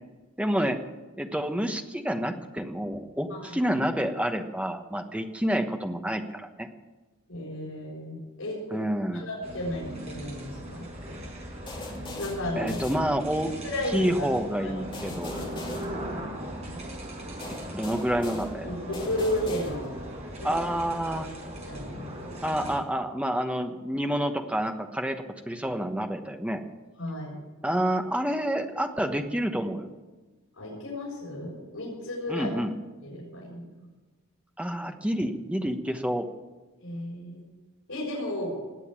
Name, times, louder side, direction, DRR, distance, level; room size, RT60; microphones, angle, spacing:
voice 1, 0.4-0.8 1.2-6.7 8.7-9.3 12.6-13.6 13.9-15.3 17.5-18.7 20.4-21.3 22.4-26.6 27.6-29.9 32.3-32.7 34.6-36.3, equal, 5° right, 5 dB, 1.1 m, -28 dB
voice 2, 7.3-8.8 9.1-10.8 12.2-12.7 13.6-14.3 14.6-14.7 18.6-19.9 20.4-20.5 21.7-22.3 27.0-27.3 30.6-32.5 33.0-33.6 36.8-37.4 37.9-38.5, left 1 dB, 80° left, -6 dB, 6.3 m, -33 dB
sound 1, 9.4-22.8, right 1 dB, 30° right, 5.1 m, -39 dB
sound 2, 11.7-13.6 14.9-16.7 17.4-20.2, left 2 dB, 25° left, 2.3 m, -41 dB
19.5 x 8.3 x 8.8 m, 1.2 s
head